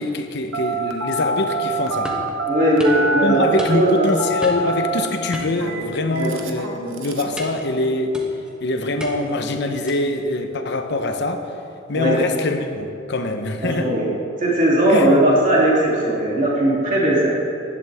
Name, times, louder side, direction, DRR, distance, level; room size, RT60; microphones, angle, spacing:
voice 1, 0.0-2.1 3.2-8.2 8.6-11.5 11.9-13.9 14.9-15.2, left 2 dB, 60° left, 6 dB, 1.0 m, -24 dB
Telephone, 0.5-7.4, right 3 dB, 85° right, 1.1 m, -26 dB
sound 1, 2.0-2.3 2.8-3.0 3.6-4.0 4.4-4.8 5.3-6.1 6.4-6.7 7.4-7.7 8.1-8.5 9.0-9.4 9.9-10.2, equal, 5° right, 1.2 m, -35 dB
voice 2, 2.5-4.1 6.1-6.3 11.9-12.2 13.6-14.0 14.4-17.3, right 1 dB, 40° right, -6 dB, 3.1 m, -18 dB
15.5 x 11.0 x 3.6 m, 2.7 s
head